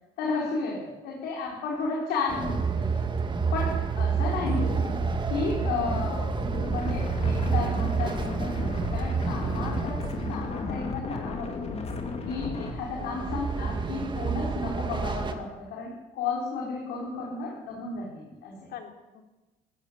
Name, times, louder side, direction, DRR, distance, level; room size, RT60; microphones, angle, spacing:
voice 1, 0.2-3.1 3.5-4.7 5.3-6.3 6.7-11.8 12.3-18.7, left 4 dB, 90° left, -3 dB, 5.5 m, -33 dB
Train, 2.3-10.8 12.6-15.3, right 5 dB, 30° right, 2.3 m, -29 dB
voice 2, 4.2-4.7 10.3-10.7 13.0-13.4 17.2-17.4 18.7-19.2, left 8 dB, 70° left, 4 dB, 3.5 m, -45 dB
sound 1, 4.4-12.7, left 3 dB, 40° left, 3.6 m, -34 dB
20.0 x 16.0 x 8.3 m, 1.1 s
cardioid pair, 110°, 17 cm